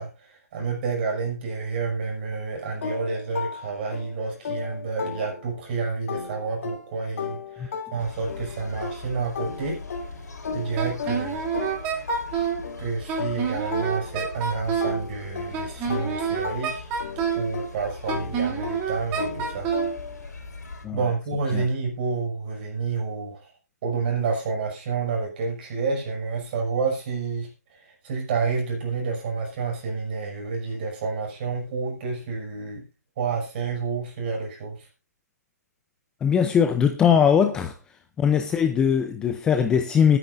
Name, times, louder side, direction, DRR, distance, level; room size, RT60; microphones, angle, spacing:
voice 1, 0.0-9.8 10.5-11.4 12.8-16.9 17.3-19.7 20.9-23.5 23.8-32.9 33.2-34.9, right 4 dB, 35° right, 6.5 m, -29 dB
sound 1, 2.8-5.7 6.1-14.4 14.8-20.2, left 6 dB, 50° left, 3.1 m, -36 dB
sound 2, 8.0-20.9, left 3 dB, 80° left, 3.7 m, -41 dB
Wind instrument woodwind instrument, 10.8-12.6 13.1-15.0 15.5-17.5 18.1-19.9, right 7 dB, 20° right, 2.7 m, -27 dB
voice 2, 36.2-37.8 38.2-40.2, left 7 dB, 10° left, 0.6 m, -20 dB
20.5 x 10.0 x 2.6 m
hypercardioid pair, 155°, 9 cm